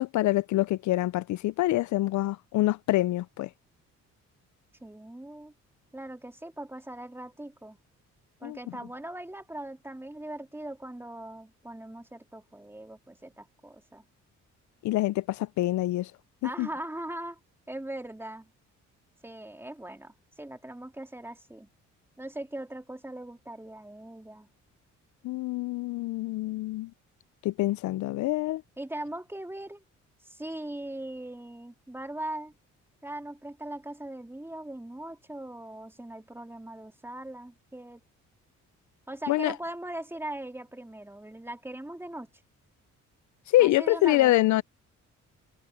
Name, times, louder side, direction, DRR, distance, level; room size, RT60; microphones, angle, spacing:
voice 1, 0.0-3.5 8.4-8.6 14.8-16.1 16.4-16.7 25.2-26.9 27.4-28.6 39.3-39.5 43.5-44.6, left 16 dB, 70° left, 0.5 m, -25 dB
voice 2, 4.8-5.5 5.9-7.8 8.4-14.0 16.4-17.4 17.7-18.5 19.2-21.7 22.2-24.5 28.8-29.8 30.2-32.5 33.0-38.0 39.1-42.3 43.6-44.3, right 1 dB, 10° right, 3.6 m, -40 dB
open air
cardioid pair, 90°, 30 cm